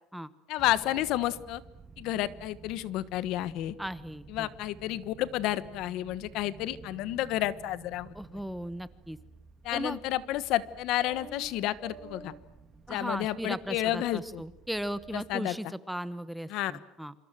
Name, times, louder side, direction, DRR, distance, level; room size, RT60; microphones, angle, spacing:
voice 1, 0.5-1.6 2.0-3.7 4.3-8.1 9.6-12.3 12.9-14.4 15.3-15.6 16.5-16.7, left 14 dB, 60° left, 16 dB, 1.2 m, -31 dB
sound 1, 0.6-15.4, right 4 dB, 20° right, 2.7 m, -52 dB
voice 2, 3.8-4.5 8.1-9.2 9.7-10.0 12.9-17.1, equal, ahead, 15 dB, 1.0 m, -37 dB
27.5 x 26.0 x 7.6 m, 0.85 s
cardioid pair, 150°, 0 cm